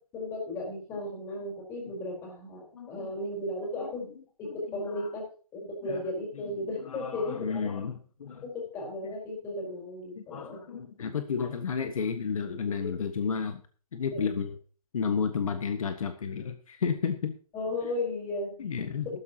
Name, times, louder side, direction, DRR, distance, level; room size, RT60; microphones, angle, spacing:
voice 1, 0.1-5.2 5.5-7.7 8.4-10.6 14.1-14.4 17.5-18.6, left 2 dB, 15° left, -1 dB, 4.4 m, -35 dB
voice 2, 2.7-3.1 3.8-3.9 5.8-6.1 6.4-6.5 6.9-7.9 8.2-8.4 10.1-13.6 13.9-14.5 14.9-17.3 18.6-19.1, left 6 dB, 65° left, 7 dB, 1.5 m, -32 dB
14.5 x 13.0 x 2.9 m, 0.40 s
hypercardioid pair, 170°, 19 cm